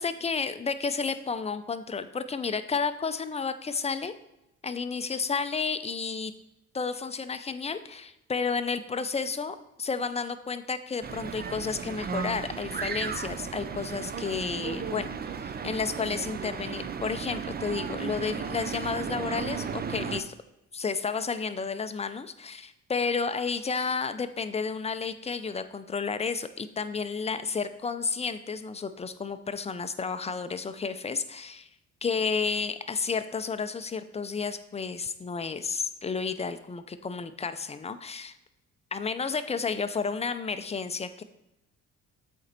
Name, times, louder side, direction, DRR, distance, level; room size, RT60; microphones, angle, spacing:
voice 1, 0.0-4.1 4.6-6.3 6.7-20.3 20.7-31.7 32.0-38.4 38.9-41.2, left 5 dB, 20° left, 11 dB, 0.5 m, -31 dB
sound 1, 11.0-20.2, right 6 dB, 30° right, 0.5 m, -35 dB
7.7 x 4.4 x 4.2 m, 0.90 s
cardioid pair, 90°, 30 cm